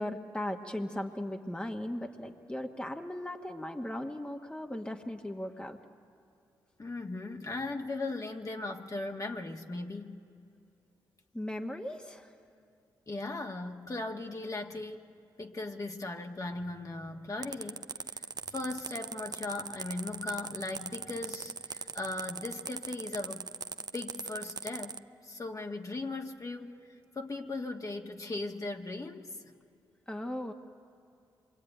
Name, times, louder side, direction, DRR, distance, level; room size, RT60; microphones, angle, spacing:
voice 1, 0.0-5.8 11.3-12.3 30.1-30.5, left 1 dB, 10° left, 3 dB, 1.4 m, -37 dB
voice 2, 6.8-10.2 13.1-15.1 15.4-17.9 18.1-23.5 23.9-26.8 27.1-29.4, left 2 dB, 35° left, 2 dB, 1.8 m, -38 dB
sound 1, 17.4-25.0, right 5 dB, 45° right, 0.7 m, -39 dB
26.5 x 23.5 x 9.1 m, 2.4 s
supercardioid pair, 55°, 9 cm